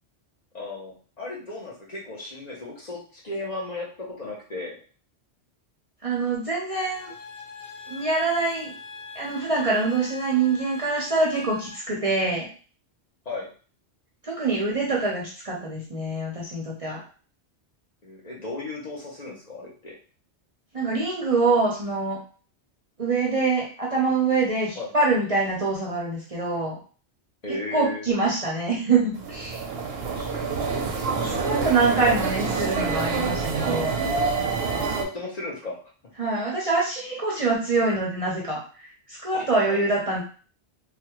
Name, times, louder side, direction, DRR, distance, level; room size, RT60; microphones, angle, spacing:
voice 1, 0.5-4.8 13.2-13.5 18.0-19.9 24.7-24.9 27.4-28.1 30.1-30.5 31.1-32.2 34.8-35.8 39.3-39.8, left 2 dB, 40° left, -3 dB, 0.8 m, -35 dB
voice 2, 6.0-7.1 7.9-8.7 9.1-12.5 14.2-17.0 20.7-22.2 23.0-26.8 27.5-29.6 31.1-34.0 36.2-40.2, right 3 dB, 40° right, -3 dB, 0.6 m, -25 dB
sound 1, 6.7-11.8, left 4 dB, 85° left, 1.0 m, -41 dB
sound 2, 29.1-35.0, right 4 dB, 70° right, 0.8 m, -27 dB
3.3 x 2.3 x 2.9 m, 0.39 s
omnidirectional pair, 1.1 m